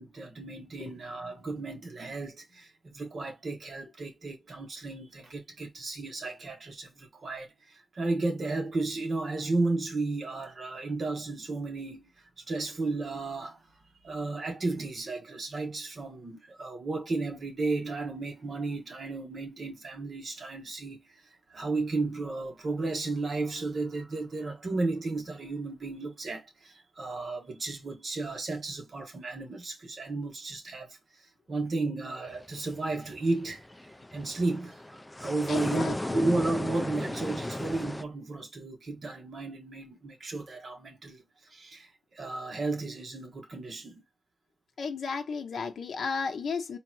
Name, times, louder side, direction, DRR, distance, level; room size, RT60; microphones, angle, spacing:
voice 1, 0.0-12.0 12.4-13.6 14.0-21.0 21.5-31.0 31.5-33.6 34.1-41.2 41.5-44.0, right 3 dB, 45° right, 1.3 m, -33 dB
sound 1, 32.3-38.0, left 1 dB, 10° left, 0.3 m, -36 dB
voice 2, 35.5-36.3 44.8-46.8, left 5 dB, 65° left, 0.7 m, -34 dB
3.9 x 2.5 x 4.4 m
wide cardioid pair, 155°, 0 cm